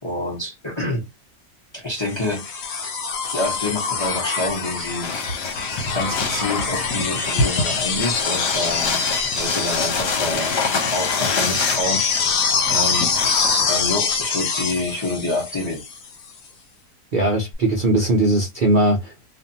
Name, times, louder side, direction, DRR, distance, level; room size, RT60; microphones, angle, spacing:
voice 1, 0.0-1.0 1.7-2.5 3.3-5.2 5.9-9.1 9.4-12.3 12.7-13.1 13.7-15.8, left 2 dB, 25° left, 0.7 m, -27 dB
sound 1, 2.1-16.1 17.5-17.6, left 5 dB, 65° left, 1.0 m, -25 dB
sound 2, 5.0-13.7, left 4 dB, 80° left, 1.3 m, -26 dB
voice 2, 17.1-19.3, right 1 dB, 70° right, 0.4 m, -19 dB
2.6 x 2.5 x 2.6 m
omnidirectional pair, 1.8 m